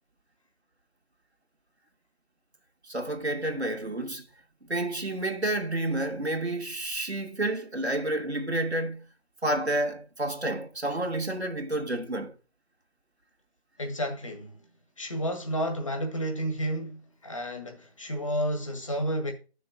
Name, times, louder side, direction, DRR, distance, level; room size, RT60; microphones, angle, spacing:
voice 1, 2.8-4.3 4.6-9.0 9.4-12.3, right 1 dB, 90° right, 2.5 m, -30 dB
voice 2, 13.8-14.6 15.0-19.3, equal, 30° left, 1.8 m, -31 dB
13.5 x 6.6 x 4.1 m
figure-of-eight pair, 170°, 32 cm